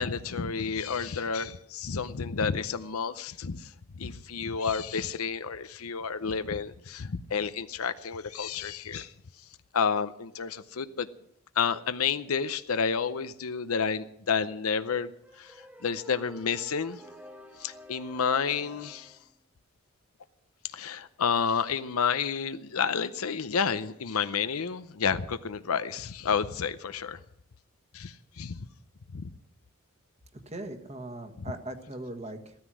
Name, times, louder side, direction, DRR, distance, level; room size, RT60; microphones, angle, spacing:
voice 1, 0.0-3.7 4.0-9.1 9.7-11.1 11.6-15.1 15.4-17.0 17.6-19.2 20.7-27.2 27.9-28.6 29.1-29.3 31.4-31.5, left 6 dB, 80° left, 0.7 m, -30 dB
sound 1, 15.2-19.3, equal, 10° right, 1.1 m, -49 dB
voice 2, 30.3-32.5, right 1 dB, 30° right, 1.5 m, -39 dB
16.0 x 13.5 x 6.2 m
head